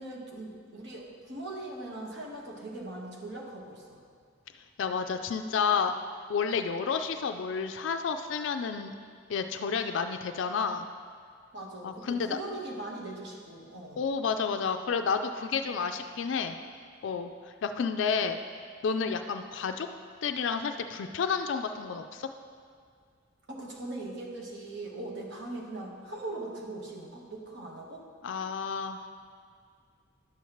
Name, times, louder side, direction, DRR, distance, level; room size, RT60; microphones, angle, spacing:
voice 1, 0.0-4.0 11.5-14.1 23.5-28.0, right 2 dB, 60° right, -2 dB, 1.3 m, -40 dB
voice 2, 4.8-5.9 6.3-9.0 9.3-10.8 11.8-12.4 14.0-16.6 17.0-17.3 17.6-18.4 18.8-19.9 20.2-22.3 28.2-29.0, left 5 dB, 70° left, 7 dB, 0.4 m, -30 dB
11.0 x 7.1 x 3.0 m, 2.1 s
head